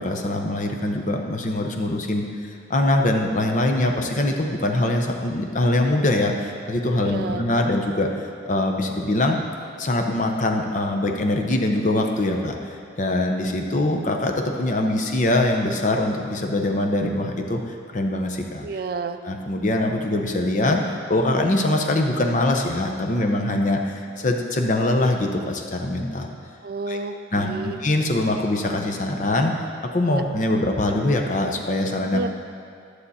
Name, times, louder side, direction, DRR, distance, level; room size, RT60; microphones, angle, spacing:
voice 1, 0.0-2.3 2.7-9.4 9.8-12.6 13.0-17.6 17.9-18.7 19.2-26.3 26.9-27.0 27.3-29.5 29.9-32.2, left 1 dB, 40° left, 3 dB, 0.7 m, -23 dB
voice 2, 7.0-7.7 18.6-19.2 26.6-27.8 30.1-30.2 32.1-32.3, right 3 dB, 50° right, 9 dB, 0.3 m, -31 dB
12.0 x 6.6 x 4.2 m, 2.3 s
head